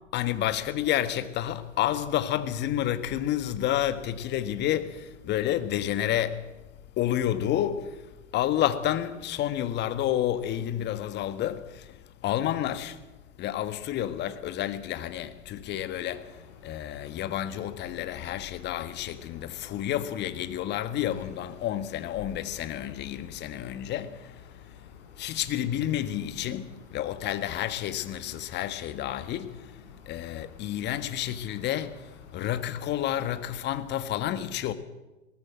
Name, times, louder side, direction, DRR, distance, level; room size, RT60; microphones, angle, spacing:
voice 1, 0.1-6.5 7.0-13.0 13.4-24.8 25.2-29.8 30.1-34.7, left 11 dB, 25° left, 1.5 m, -30 dB
sound 1, 16.0-33.6, left 5 dB, 50° left, 6.2 m, -53 dB
20.5 x 18.0 x 7.6 m
hypercardioid pair, 110°, 38 cm